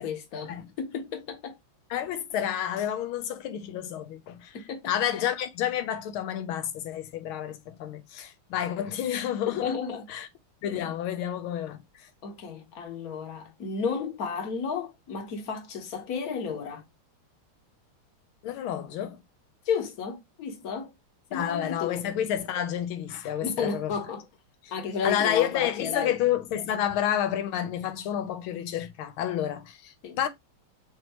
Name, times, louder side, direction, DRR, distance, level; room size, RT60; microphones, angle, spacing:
voice 1, 0.0-1.5 4.5-5.2 9.5-10.1 12.2-16.8 19.7-20.9 21.3-22.1 23.4-24.3 24.7-26.1 30.0-30.2, left 6 dB, 50° left, 1.3 m, -33 dB
voice 2, 1.9-4.6 4.9-9.7 10.1-10.3 10.6-11.8 18.4-19.2 21.3-23.9 25.0-30.3, left 10 dB, 75° left, 1.5 m, -29 dB
6.3 x 2.7 x 3.0 m
omnidirectional pair, 2.4 m